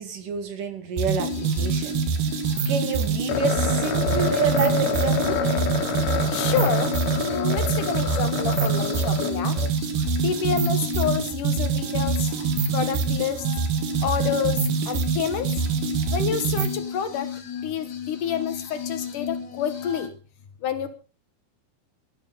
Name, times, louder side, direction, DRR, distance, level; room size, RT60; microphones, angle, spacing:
voice 1, 0.0-2.0 2.7-5.4, right 5 dB, 60° right, 7 dB, 3.8 m, -28 dB
sound 1, 1.0-16.8, right 6 dB, 85° right, 4.0 m, -25 dB
sound 2, 1.2-20.1, left 7 dB, 35° left, 2.3 m, -34 dB
sound 3, 3.3-9.7, left 5 dB, 80° left, 4.1 m, -28 dB
voice 2, 6.3-6.9 7.2-9.5 10.2-12.3 12.7-13.4 14.0-14.6 14.9-15.5 16.1-17.3 17.6-20.1 20.6-21.0, left 8 dB, 65° left, 10 dB, 2.6 m, -28 dB
18.5 x 12.5 x 5.3 m, 0.37 s
omnidirectional pair, 4.4 m